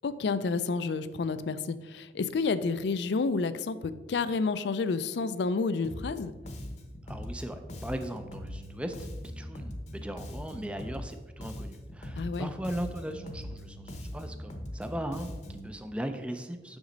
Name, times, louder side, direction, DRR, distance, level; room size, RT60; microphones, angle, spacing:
voice 1, 0.0-6.3 12.2-12.5, left 4 dB, 70° left, 13 dB, 0.4 m, -30 dB
Bass guitar, 5.8-6.2 6.4-11.1 11.4-15.7, left 1 dB, 40° left, 0.8 m, -41 dB
voice 2, 7.0-9.0 9.2-16.8, right 1 dB, 5° right, 7 dB, 0.4 m, -38 dB
7.1 x 6.2 x 3.9 m, 1.3 s
head